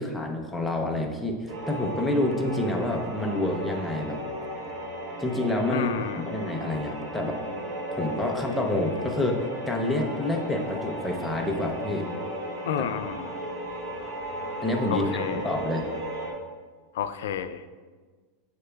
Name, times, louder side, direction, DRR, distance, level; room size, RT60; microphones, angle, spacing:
voice 1, 0.0-4.2 5.2-7.4 7.9-12.1 14.6-15.8, left 1 dB, ahead, 0 dB, 0.5 m, -28 dB
sound 1, 1.5-16.3, right 1 dB, 60° right, 1.7 m, -35 dB
voice 2, 5.7-6.3 12.7-13.3 14.9-15.6 16.9-17.6, left 9 dB, 80° left, 11 dB, 0.3 m, -31 dB
6.9 x 6.6 x 2.3 m, 1.4 s
supercardioid pair, 175°, 0 cm